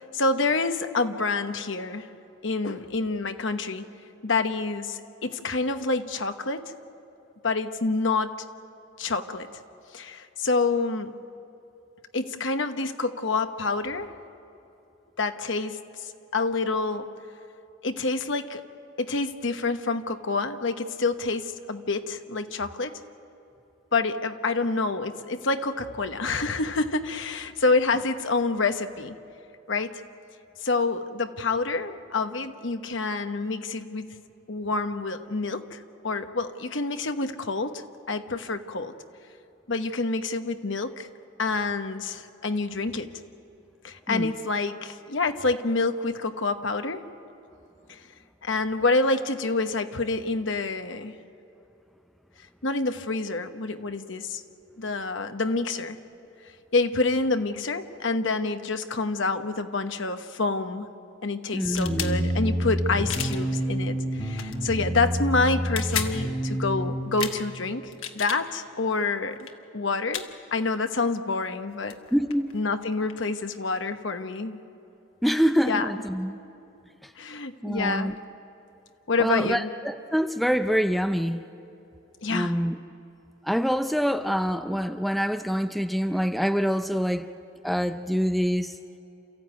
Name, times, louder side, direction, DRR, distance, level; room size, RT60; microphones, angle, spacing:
voice 1, 0.1-2.1 2.4-3.9 4.2-6.7 7.4-8.4 9.0-9.5 9.9-11.1 12.1-14.1 15.2-17.1 17.8-18.6 19.0-23.0 23.9-29.2 29.7-30.0 30.6-34.1 34.5-38.9 39.7-41.1 41.4-43.1 43.8-47.0 47.9-48.0 48.4-51.1 52.6-54.4 54.8-56.0 56.7-60.9 61.2-69.4 69.7-72.0 72.5-74.6 75.7-75.9 77.2-78.2 79.1-79.7 82.2-82.5, left 3 dB, 65° left, 8 dB, 1.1 m, -27 dB
voice 2, 61.5-62.3 72.1-72.5 75.2-76.4 77.0-77.1 77.6-78.1 79.2-81.4 82.3-82.8 83.4-87.3 87.6-88.7, equal, ahead, 8 dB, 0.5 m, -25 dB
sound 1, 61.6-62.1 63.1-63.4 64.3-64.6 65.6-66.2 67.2-67.4 67.9-68.4 69.4-69.5 70.1-70.3 71.6-71.7 71.9-73.2, left 8 dB, 85° left, 1.5 m, -33 dB
sound 2, 61.8-67.0, equal, 20° left, 6.7 m, -28 dB
29.0 x 14.5 x 9.3 m, 2.9 s
head